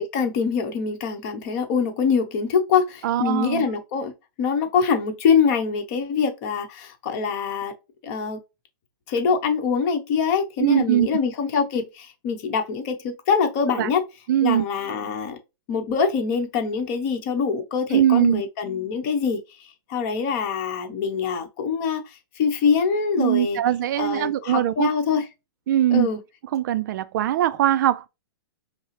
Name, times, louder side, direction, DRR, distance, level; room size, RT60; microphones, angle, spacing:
voice 1, 0.0-7.7 8.0-8.4 9.1-14.0 14.4-15.4 15.7-19.4 19.9-22.0 22.4-23.6 24.0-25.3 25.9-26.2, left 6 dB, 40° left, 1.0 m, -24 dB
voice 2, 3.0-3.7 10.6-11.1 13.8-13.9 14.3-14.6 17.9-18.4 23.2-24.9 25.7-26.1 26.5-28.1, right 11 dB, 55° right, 0.4 m, -21 dB
5.3 x 2.0 x 3.2 m
hypercardioid pair, 145°, 12 cm